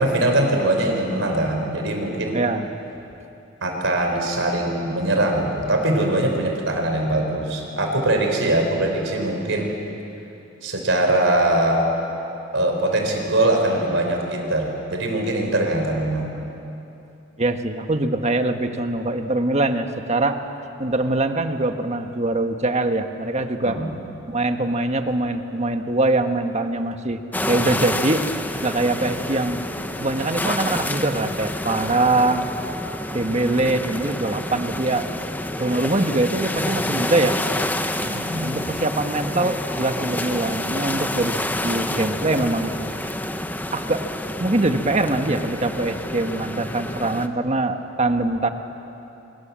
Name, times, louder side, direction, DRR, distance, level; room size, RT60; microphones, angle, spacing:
voice 1, 0.0-2.4 3.6-9.7 10.6-11.8 12.5-16.3 23.6-23.9 38.1-38.6, right 1 dB, 75° right, 2 dB, 5.1 m, -22 dB
voice 2, 2.3-2.7 17.4-20.4 20.8-23.8 24.2-28.2 28.6-29.6 30.0-32.4 33.1-35.1 35.6-37.4 38.0-42.7 43.7-44.1 44.4-48.5, right 2 dB, 35° right, 6 dB, 1.5 m, -23 dB
sound 1, 27.3-47.3, left 1 dB, 10° left, 1.0 m, -28 dB
30.0 x 24.5 x 7.6 m, 2.9 s
head